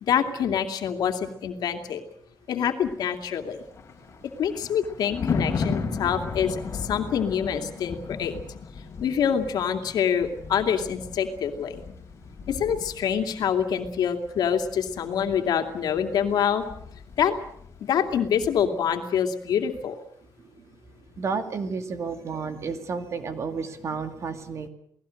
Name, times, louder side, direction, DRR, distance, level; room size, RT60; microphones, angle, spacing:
voice 1, 0.0-2.0 2.5-3.6 4.4-8.4 9.0-11.8 12.5-16.6 17.2-17.4 17.8-19.9, left 8 dB, 70° left, 6 dB, 2.6 m, -26 dB
Thunder, 3.4-17.9 18.2-18.5, left 4 dB, 40° left, 3.3 m, -36 dB
voice 2, 21.2-24.7, right 5 dB, 45° right, 8 dB, 2.3 m, -31 dB
29.0 x 19.0 x 6.5 m, 0.66 s
cardioid pair, 160°, 7 cm